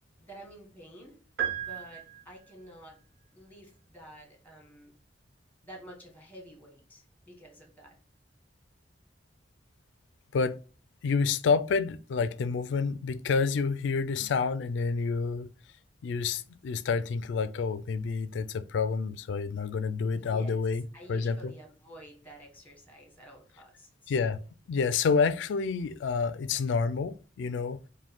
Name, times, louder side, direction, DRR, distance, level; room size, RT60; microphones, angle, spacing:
voice 1, 0.2-1.2 1.6-3.0 3.3-5.0 5.6-8.0 20.1-20.6 20.9-24.1, right 1 dB, 10° left, 1.2 m, -50 dB
sound 1, 1.4-2.7, right 10 dB, 70° right, 0.7 m, -35 dB
voice 2, 11.0-15.5 16.0-20.8 21.1-21.5 24.1-24.4 24.7-27.8, left 5 dB, 85° left, 0.3 m, -28 dB
5.0 x 2.2 x 3.5 m
head